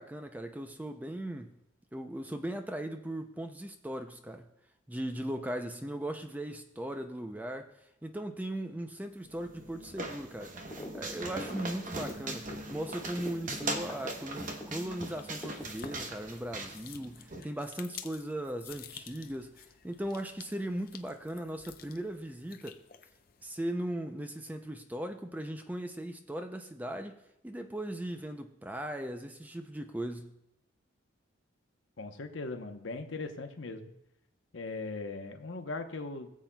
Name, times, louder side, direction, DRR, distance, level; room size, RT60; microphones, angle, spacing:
voice 1, 0.0-1.6 1.9-4.4 4.9-7.7 8.0-10.5 10.9-22.8 23.4-27.1 27.4-30.3, right 1 dB, 10° right, 6 dB, 0.4 m, -38 dB
sound 1, 9.2-17.4, right 2 dB, 40° right, 0.9 m, -40 dB
sound 2, 10.7-11.0 11.3-15.1 15.4-16.3, left 1 dB, 15° left, 1.6 m, -44 dB
sound 3, 13.8-23.5, left 8 dB, 45° left, 0.6 m, -52 dB
voice 2, 32.0-33.9 34.5-36.3, left 3 dB, 75° left, 6 dB, 0.9 m, -39 dB
21.0 x 7.4 x 2.3 m, 0.81 s
head